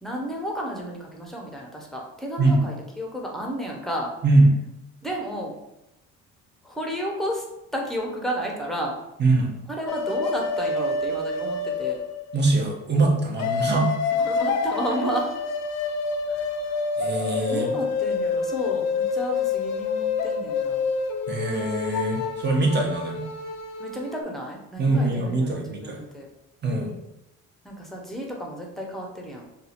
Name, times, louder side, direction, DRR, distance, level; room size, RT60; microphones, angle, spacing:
voice 1, 0.0-4.1 5.0-5.5 6.6-7.4 7.7-8.9 9.7-12.0 14.1-15.3 17.5-20.9 23.8-26.3 27.6-29.5, equal, ahead, -1 dB, 0.8 m, -32 dB
sound 1, 9.9-12.4 13.4-24.2, left 4 dB, 55° left, 0.4 m, -27 dB
voice 2, 12.3-13.9 17.0-17.7 21.3-23.3 24.8-26.0 26.6-26.9, right 2 dB, 35° right, 0 dB, 0.9 m, -22 dB
2.7 x 2.4 x 4.2 m, 0.90 s
cardioid pair, 90°, 32 cm